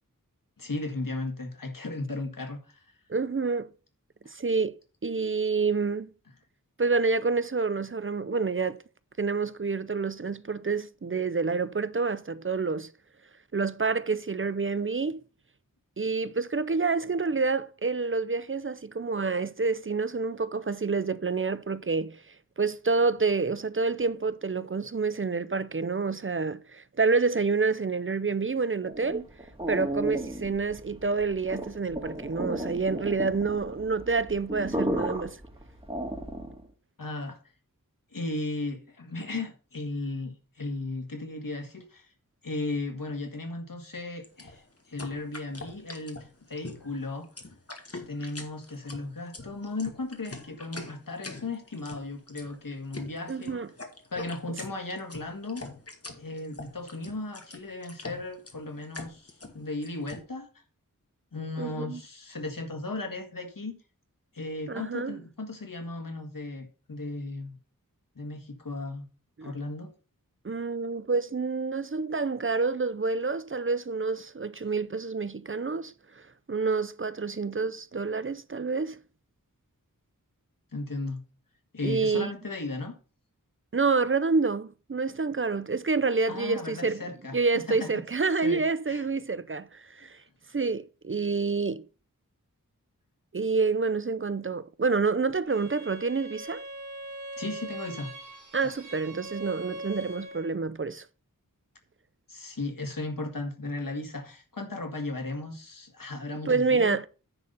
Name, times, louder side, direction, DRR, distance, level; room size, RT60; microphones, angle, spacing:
voice 1, 0.6-2.9 37.0-37.4 38.1-42.1 42.4-46.2 46.5-47.3 48.1-53.6 54.1-55.6 56.2-60.5 61.3-63.7 64.3-67.6 68.2-69.1 69.4-69.9 80.7-81.2 81.7-82.9 86.3-88.0 88.4-88.6 88.9-89.1 97.4-98.1 98.6-98.7 102.3-107.0, left 2 dB, 75° left, 1.9 m, -36 dB
voice 2, 3.1-3.7 4.3-4.8 5.0-6.1 6.8-8.8 9.2-12.9 13.5-15.2 16.0-22.2 22.6-29.2 29.7-35.4 53.3-53.7 61.6-62.0 64.7-65.2 69.4-69.5 70.4-76.2 76.5-79.0 81.8-82.3 83.7-87.0 87.3-90.2 90.5-91.8 93.3-96.6 98.5-101.1 106.5-107.1, right 4 dB, 40° right, 0.5 m, -28 dB
sound 1, 28.8-36.7, right 1 dB, 15° right, 2.2 m, -34 dB
sound 2, 44.2-60.2, left 2 dB, 45° left, 1.8 m, -43 dB
Bowed string instrument, 95.5-100.6, right 1 dB, 65° right, 1.9 m, -41 dB
9.8 x 4.1 x 6.7 m
wide cardioid pair, 55°, 33 cm